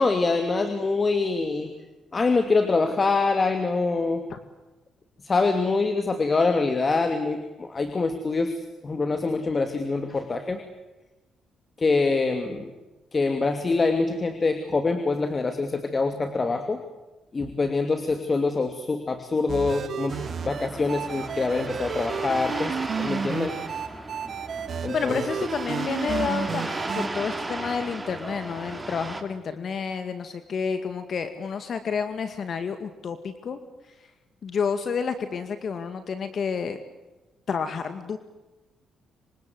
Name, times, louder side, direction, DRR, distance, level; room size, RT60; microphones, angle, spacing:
voice 1, 0.0-1.7 2.1-4.2 5.2-8.5 8.8-10.6 11.8-12.7 13.1-16.8 17.3-20.2 20.5-23.6 24.8-25.2, left 3 dB, 30° left, 8 dB, 2.7 m, -25 dB
sound 1, 19.5-27.1, right 6 dB, 55° right, 2.6 m, -32 dB
sound 2, 20.1-29.2, right 2 dB, 15° right, 3.2 m, -35 dB
voice 2, 24.9-33.6 34.4-36.8 37.5-38.2, left 6 dB, 55° left, 9 dB, 2.2 m, -30 dB
27.5 x 25.5 x 8.0 m, 1.1 s
cardioid pair, 90°, 0 cm